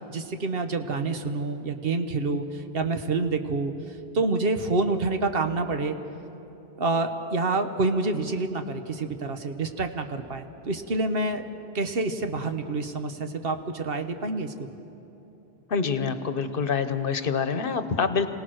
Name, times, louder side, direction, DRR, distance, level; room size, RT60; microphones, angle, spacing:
voice 1, 0.1-3.7 4.1-6.0 6.8-14.7, right 3 dB, 65° right, 7 dB, 1.3 m, -27 dB
voice 2, 15.7-18.3, left 5 dB, 60° left, 10 dB, 1.1 m, -26 dB
27.0 x 18.0 x 6.4 m, 3.0 s
omnidirectional pair, 1.1 m